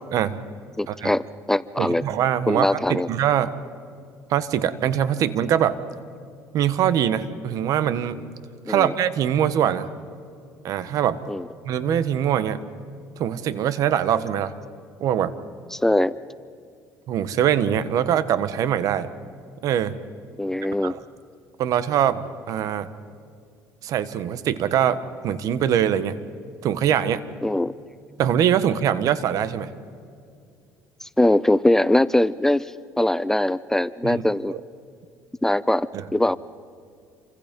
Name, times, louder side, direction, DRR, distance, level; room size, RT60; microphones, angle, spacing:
voice 1, 0.8-1.2 1.5-2.0 2.5-3.1 8.7-8.9 11.3-11.4 15.7-16.1 20.4-21.0 27.4-27.7 31.0-32.7 33.0-34.6 35.4-35.9 36.1-36.4, left 1 dB, 5° left, 17 dB, 0.5 m, -21 dB
voice 2, 1.8-3.5 4.3-5.8 6.5-8.2 8.7-9.9 10.6-11.2 11.6-12.6 13.2-14.5 15.0-15.3 17.1-19.1 19.6-19.9 20.8-21.0 21.6-22.9 23.8-26.2 26.6-27.2 28.2-29.7 34.0-34.2 34.5-34.6, right 9 dB, 60° right, 14 dB, 1.3 m, -23 dB
28.5 x 25.0 x 5.3 m, 2.4 s
cardioid pair, 100°, 7 cm